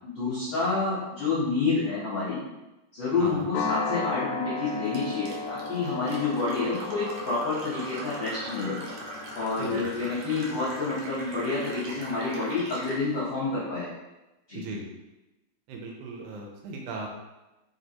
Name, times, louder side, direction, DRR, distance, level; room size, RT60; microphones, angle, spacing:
voice 1, 0.0-2.4 2.9-9.1 9.3-13.9 14.5-14.6, left 3 dB, 65° left, -9 dB, 1.2 m, -29 dB
sound 1, 3.5-12.1, left 4 dB, 80° left, 1.9 m, -36 dB
Fill (with liquid), 4.9-13.1, right 1 dB, 75° right, 1.4 m, -41 dB
voice 2, 14.5-14.8 15.7-17.2, right 2 dB, 90° right, 0 dB, 2.2 m, -37 dB
4.4 x 3.3 x 2.8 m, 1.0 s
omnidirectional pair, 3.4 m